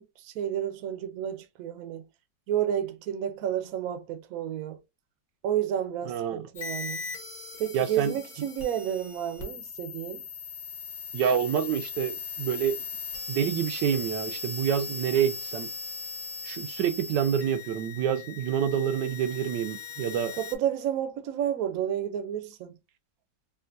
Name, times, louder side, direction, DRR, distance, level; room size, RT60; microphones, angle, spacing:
voice 1, 0.0-2.0 2.5-4.8 5.4-7.0 7.6-10.2 20.4-22.8, right 10 dB, 65° right, 0.9 m, -31 dB
voice 2, 6.1-6.4 7.7-8.1 11.1-12.8 13.3-15.7 16.4-20.3, right 9 dB, 85° right, 1.2 m, -27 dB
sound 1, 6.5-20.5, left 4 dB, 40° left, 1.0 m, -39 dB
3.5 x 2.5 x 2.5 m
omnidirectional pair, 1.9 m